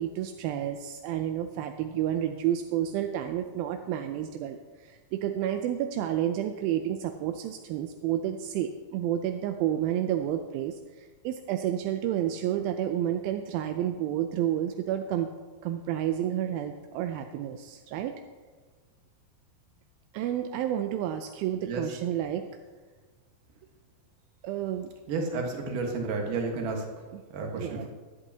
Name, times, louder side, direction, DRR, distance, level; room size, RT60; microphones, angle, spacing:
voice 1, 0.0-15.3 15.6-18.2 20.1-22.4 24.4-24.9 27.1-27.2 27.5-27.9, right 11 dB, 80° right, 6 dB, 2.2 m, -30 dB
voice 2, 25.1-26.9 27.3-27.9, right 3 dB, 60° right, 1 dB, 2.8 m, -31 dB
21.5 x 8.1 x 2.9 m, 1.4 s
omnidirectional pair, 4.6 m